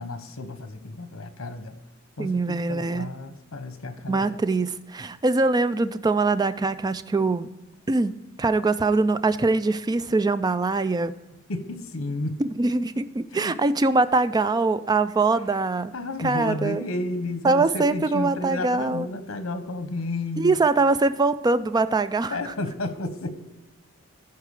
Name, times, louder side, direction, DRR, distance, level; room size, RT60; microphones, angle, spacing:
voice 1, 0.0-1.7 2.2-4.4 11.5-12.4 13.3-13.5 15.9-20.6 22.3-23.4, left 2 dB, 80° left, 9 dB, 1.1 m, -32 dB
voice 2, 2.2-3.1 4.1-7.5 7.9-11.1 12.4-16.0 16.2-16.8 17.4-19.1 20.4-22.5, right 3 dB, 20° right, 13 dB, 0.3 m, -23 dB
14.0 x 4.8 x 4.8 m, 1.1 s
head